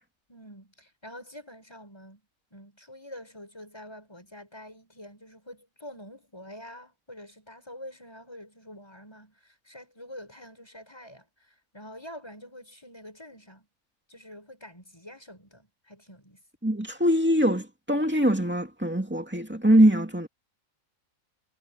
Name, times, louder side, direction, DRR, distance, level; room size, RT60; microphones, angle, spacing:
voice 1, 0.3-2.2 2.5-13.7 14.1-16.4, left 1 dB, 20° left, 7.1 m, -46 dB
voice 2, 16.6-20.3, equal, 10° right, 2.3 m, -22 dB
omnidirectional pair, 1.4 m